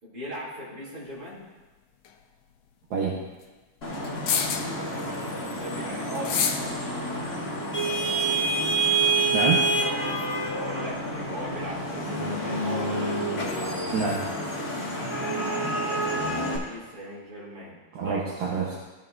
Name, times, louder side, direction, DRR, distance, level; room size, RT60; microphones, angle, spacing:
voice 1, 0.0-1.5 4.7-6.7 9.7-10.2 10.5-13.2 15.3-17.8 18.0-18.3, equal, 40° right, -8 dB, 3.4 m, -39 dB
sound 1, 2.1-2.2 4.0-4.8 6.2-6.7, left 7 dB, 80° left, 1.5 m, -26 dB
voice 2, 2.9-3.2 9.3-9.7 13.9-14.3 17.9-18.7, right 5 dB, 70° right, -5 dB, 1.9 m, -27 dB
Vehicle horn car horn honking / Traffic noise roadway noise, 3.8-16.6, right 2 dB, 30° left, 1.4 m, -28 dB
15.5 x 5.7 x 2.6 m, 1.2 s
omnidirectional pair, 2.4 m